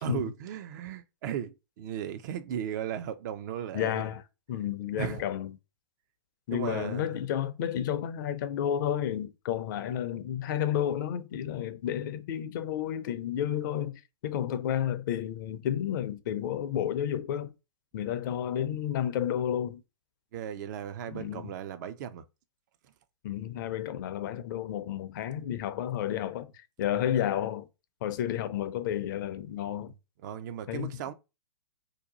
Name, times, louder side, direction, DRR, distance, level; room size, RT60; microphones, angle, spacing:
voice 1, 0.0-4.1 4.9-5.2 6.5-7.2 20.3-22.3 22.8-22.9 30.2-31.1, right 9 dB, 45° right, 0.4 m, -36 dB
voice 2, 3.7-4.2 4.5-5.5 6.5-17.5 17.9-19.8 21.1-21.5 23.2-26.5 26.8-27.7 28.0-29.9 30.7-30.9, left 10 dB, 45° left, 0.5 m, -31 dB
2.7 x 2.3 x 3.8 m
figure-of-eight pair, 115°, 14 cm